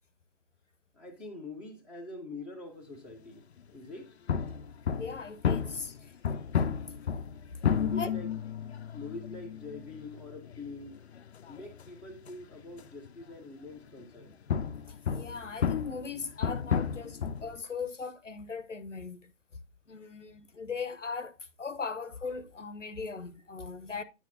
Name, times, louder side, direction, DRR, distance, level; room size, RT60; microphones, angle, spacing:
voice 1, 0.9-4.2 7.7-11.0 11.5-14.4, left 3 dB, 5° right, 0.7 m, -45 dB
sound 1, 4.3-13.2 14.0-17.6, left 7 dB, 60° left, 0.6 m, -32 dB
voice 2, 4.9-6.1 8.0-8.1 15.1-19.3 19.9-24.0, left 5 dB, 85° left, 0.9 m, -39 dB
9.4 x 7.2 x 2.7 m
figure-of-eight pair, 130°, 36 cm